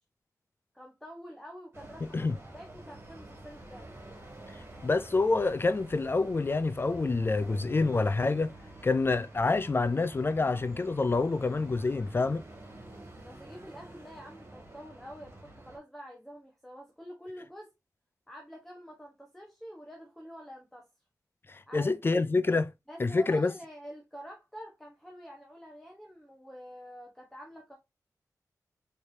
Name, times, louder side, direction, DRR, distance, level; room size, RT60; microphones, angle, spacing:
voice 1, 0.7-2.3 2.5-3.9 13.2-17.7 18.3-20.9 21.7-22.2 22.9-27.7, equal, 5° left, 1.1 m, -47 dB
sound 1, 1.7-15.8, right 1 dB, 40° right, 2.1 m, -48 dB
voice 2, 4.8-8.5 8.8-12.4 21.5-22.7 23.0-23.5, left 3 dB, 35° left, 0.3 m, -27 dB
4.5 x 3.3 x 2.7 m
wide cardioid pair, 75°, 7 cm